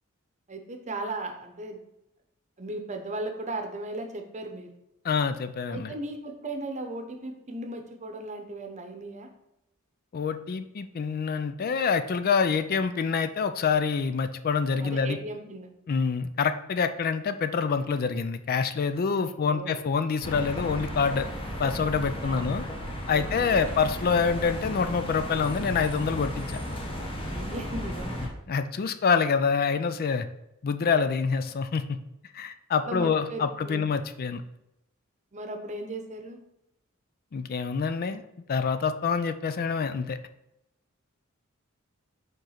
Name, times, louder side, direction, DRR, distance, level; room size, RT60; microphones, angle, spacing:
voice 1, 0.5-1.8 2.6-4.7 5.7-9.3 14.7-15.7 19.0-19.8 22.2-22.5 23.1-23.7 27.3-28.2 32.8-33.8 35.3-36.4, right 2 dB, 35° right, 5 dB, 0.8 m, -37 dB
voice 2, 5.0-5.9 10.1-15.2 15.9-21.3 21.6-22.6 23.1-26.6 28.5-30.3 30.6-32.0 32.3-34.4 37.3-38.2 38.5-40.2, left 5 dB, 45° left, 10 dB, 0.4 m, -26 dB
sound 1, 20.2-28.3, equal, 25° left, 1.2 m, -34 dB
5.3 x 3.8 x 5.7 m, 0.86 s
head